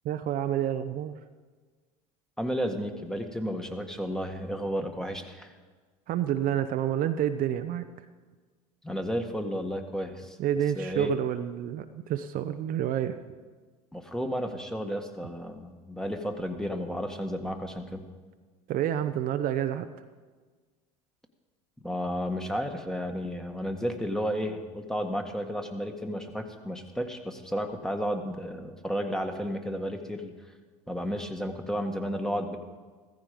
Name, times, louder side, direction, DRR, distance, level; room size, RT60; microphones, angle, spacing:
voice 1, 0.0-1.1 6.1-7.9 10.4-13.2 18.7-19.9, right 10 dB, 50° right, 8 dB, 0.8 m, -28 dB
voice 2, 2.4-5.5 8.8-10.4 10.7-11.1 13.9-18.1 21.8-30.3 30.9-32.6, equal, 5° left, 5 dB, 1.7 m, -32 dB
15.0 x 14.5 x 5.2 m, 1.4 s
hypercardioid pair, 80°, 18 cm